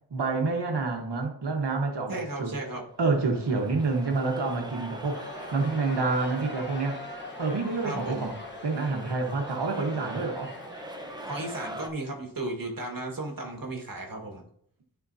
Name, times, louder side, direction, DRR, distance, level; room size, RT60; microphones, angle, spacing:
voice 1, 0.1-2.5 3.0-7.0 7.4-8.4 8.6-10.5, right 3 dB, 85° right, 2 dB, 1.3 m, -28 dB
voice 2, 2.1-2.8 7.8-8.3 11.2-14.4, right 2 dB, 55° right, 1 dB, 1.8 m, -35 dB
sound 1, 2.9-11.9, right 1 dB, 10° right, 0.9 m, -43 dB
Crowd, 4.9-12.2, left 2 dB, 25° left, 1.2 m, -43 dB
12.5 x 4.5 x 2.7 m, 0.66 s
wide cardioid pair, 95°, 40 cm